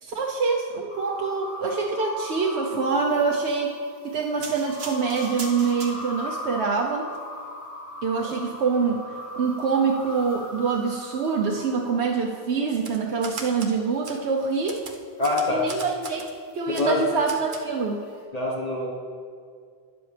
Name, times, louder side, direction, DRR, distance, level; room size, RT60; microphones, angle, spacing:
voice 1, 0.0-3.7 4.0-7.1 8.0-14.8 15.5-16.2 16.5-18.0, right 5 dB, 90° right, -1 dB, 1.0 m, -25 dB
sound 1, 0.9-12.6 16.0-18.2, left 1 dB, 55° left, 1.9 m, -39 dB
sound 2, 4.4-6.4 7.0-7.2, right 3 dB, 70° right, 1.4 m, -39 dB
Typewriter, 12.7-13.7 14.0-14.2 14.7-16.3 16.7-16.9 17.3-17.6, right 4 dB, 55° right, 1.0 m, -38 dB
voice 2, 15.2-15.7 16.7-17.1 18.3-18.9, left 2 dB, 40° left, -2 dB, 1.3 m, -25 dB
12.0 x 10.0 x 3.3 m, 2.2 s
omnidirectional pair, 1.1 m